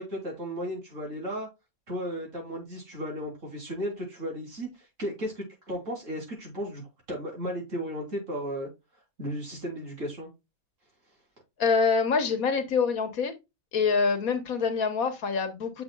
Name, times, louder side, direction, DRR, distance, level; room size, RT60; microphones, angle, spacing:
voice 1, 0.0-1.5 1.9-4.7 5.0-6.8 7.1-8.7 9.2-10.3, equal, 60° right, 3.4 m, -34 dB
voice 2, 11.6-13.3 13.7-15.8, left 5 dB, 75° left, 1.6 m, -25 dB
7.4 x 6.0 x 2.2 m
omnidirectional pair, 1.5 m